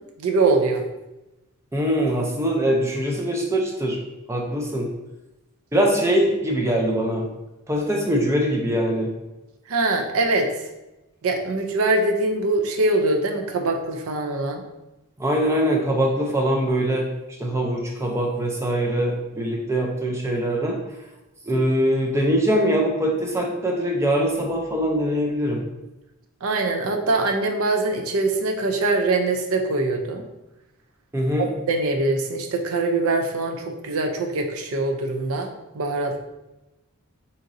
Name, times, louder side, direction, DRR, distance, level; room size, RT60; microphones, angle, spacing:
voice 1, 0.2-0.8 9.7-10.5 11.2-14.6 21.5-21.7 26.4-30.2 31.7-35.5 35.7-36.2, right 2 dB, 70° right, 4 dB, 0.5 m, -23 dB
voice 2, 1.7-4.0 4.3-4.9 5.7-7.3 7.7-9.1 15.2-17.1 17.4-20.8 21.5-25.6 31.1-31.5, equal, 10° right, 0 dB, 0.4 m, -22 dB
3.8 x 2.9 x 2.5 m, 0.99 s
head